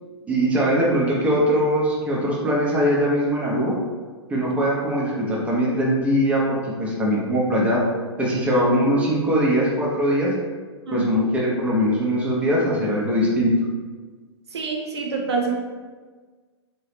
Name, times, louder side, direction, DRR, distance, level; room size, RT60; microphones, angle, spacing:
voice 1, 0.3-3.8 4.3-7.8 8.2-10.3 10.9-13.5, equal, 10° right, -5 dB, 0.8 m, -21 dB
voice 2, 14.5-15.5, right 5 dB, 65° right, 1 dB, 0.6 m, -26 dB
3.8 x 2.8 x 3.3 m, 1.4 s
figure-of-eight pair, 110°, 15 cm